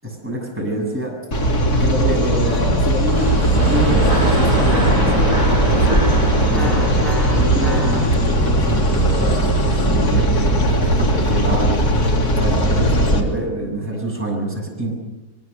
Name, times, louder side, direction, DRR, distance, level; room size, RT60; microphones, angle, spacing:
voice 1, 0.0-1.2 1.7-5.3 5.6-6.1 6.3-6.9 7.3-11.8 12.4-14.9, right 1 dB, 5° right, -2 dB, 6.9 m, -26 dB
sound 1, 1.3-13.2, right 1 dB, 70° left, 3.5 m, -18 dB
sound 2, 2.5-3.0 4.1-8.1, left 2 dB, 30° left, 2.6 m, -30 dB
sound 3, 3.0-8.6, right 1 dB, 50° right, 7.8 m, -24 dB
23.5 x 23.0 x 6.8 m, 1.1 s
omnidirectional pair, 1.7 m